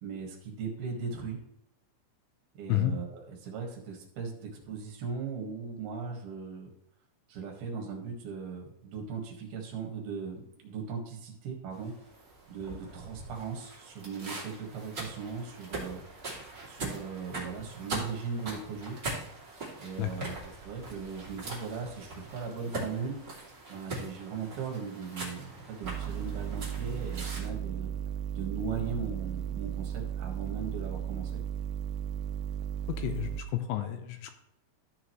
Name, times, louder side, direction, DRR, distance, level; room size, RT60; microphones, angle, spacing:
voice 1, 0.0-1.4 2.6-6.7 7.3-11.9 12.5-16.0 16.6-19.0 19.8-20.4 20.6-23.2 23.7-27.9 28.3-31.4, right 5 dB, 60° right, 0 dB, 3.1 m, -38 dB
sound 1, 11.7-27.5, right 2 dB, 25° right, 2.3 m, -42 dB
sound 2, 25.8-33.4, right 9 dB, 85° right, 3.0 m, -35 dB
voice 2, 32.9-34.3, left 13 dB, 80° left, 8 dB, 2.7 m, -31 dB
14.0 x 6.4 x 3.1 m, 0.80 s
omnidirectional pair, 5.7 m